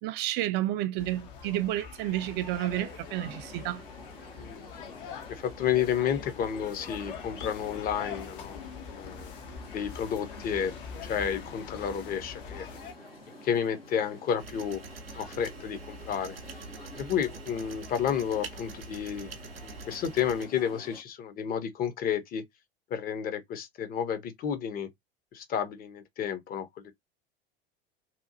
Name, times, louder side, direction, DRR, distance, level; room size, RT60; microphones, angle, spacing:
voice 1, 0.0-3.8, right 14 dB, 35° right, 0.5 m, -30 dB
sound 1, 1.0-12.9, left 6 dB, 60° left, 0.8 m, -43 dB
sound 2, 2.2-21.0, left 1 dB, 85° left, 1.0 m, -49 dB
voice 2, 5.3-8.6 8.9-9.3 9.7-10.7 11.0-12.7 13.4-14.8 15.2-16.4 17.0-19.3 19.6-22.4 22.9-24.9 25.3-26.9, left 8 dB, 30° left, 0.7 m, -31 dB
sound 3, 14.4-20.5, right 4 dB, 80° right, 0.6 m, -45 dB
2.8 x 2.3 x 2.6 m
figure-of-eight pair, 75°, 29 cm